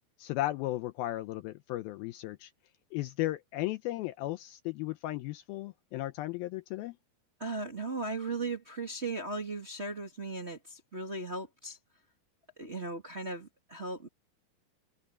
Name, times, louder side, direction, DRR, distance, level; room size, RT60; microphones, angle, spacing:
voice 1, 0.2-2.5 2.9-7.0, left 16 dB, 80° left, 2.2 m, -35 dB
voice 2, 7.4-11.8 12.6-14.1, right 3 dB, 25° right, 1.6 m, -37 dB
open air
omnidirectional pair, 4.7 m